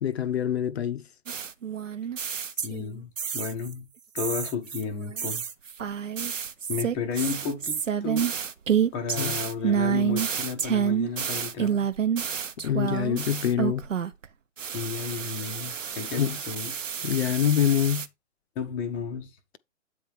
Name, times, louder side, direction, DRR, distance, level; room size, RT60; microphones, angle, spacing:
voice 1, 0.0-1.0 9.2-9.4 12.6-13.9 16.2-16.4 17.0-18.1, left 10 dB, 55° left, 0.6 m, -25 dB
sound 1, 1.3-2.9 3.2-3.7 4.2-14.3 14.6-18.1, right 8 dB, 75° right, 0.8 m, -29 dB
voice 2, 2.6-3.8 4.1-5.4 6.7-8.3 8.9-11.9 14.7-16.7 18.6-19.3, left 6 dB, 10° left, 0.5 m, -33 dB
8.5 x 3.6 x 4.6 m
figure-of-eight pair, 125°, 39 cm